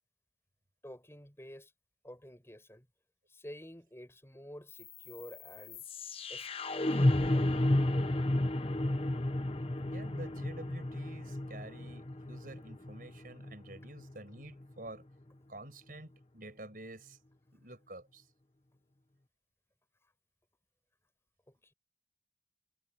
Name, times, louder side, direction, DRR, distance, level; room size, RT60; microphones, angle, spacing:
voice 1, 0.8-1.7 2.0-2.9 3.3-5.8 6.3-6.5 6.9-7.5 21.5-21.7, equal, 15° left, 7.9 m, -50 dB
sound 1, 4.7-14.7, left 1 dB, 30° left, 1.0 m, -32 dB
voice 2, 9.8-15.0 15.5-17.2 17.5-18.3, right 1 dB, 50° right, 5.7 m, -49 dB
head